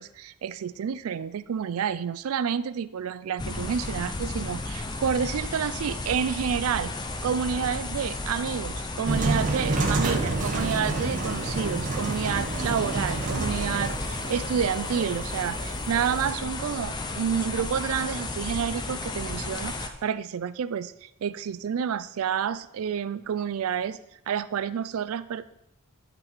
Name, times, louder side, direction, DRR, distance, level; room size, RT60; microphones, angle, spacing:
voice 1, 0.0-6.9 7.2-24.0 24.3-25.4, right 7 dB, 80° right, 15 dB, 0.4 m, -29 dB
sound 1, 3.4-19.9, left 2 dB, 20° left, 0.5 m, -34 dB
sound 2, 9.1-16.3, right 2 dB, 35° right, 0.9 m, -29 dB
12.0 x 4.1 x 4.3 m, 0.82 s
head